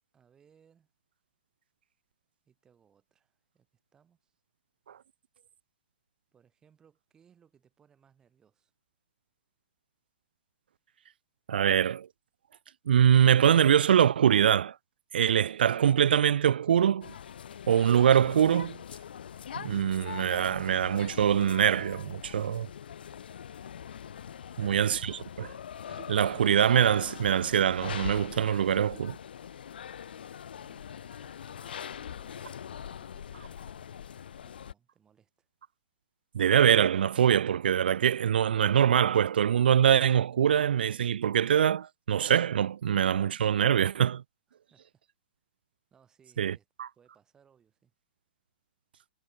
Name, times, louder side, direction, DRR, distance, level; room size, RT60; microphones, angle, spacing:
voice 1, 0.1-0.9 2.4-3.7 3.9-4.4 6.3-8.7 30.6-35.5 44.7-45.0 45.9-46.7 46.9-47.9, right 7 dB, 15° right, 7.0 m, -65 dB
voice 2, 11.5-12.1 12.9-14.7 15.1-17.1 17.7-18.8 19.6-22.7 24.6-25.5 26.1-29.2 36.3-44.2 46.4-46.9, right 9 dB, 80° right, 0.4 m, -23 dB
sound 1, 17.0-34.7, left 8 dB, 75° left, 1.3 m, -42 dB
hypercardioid pair, 160°, 5 cm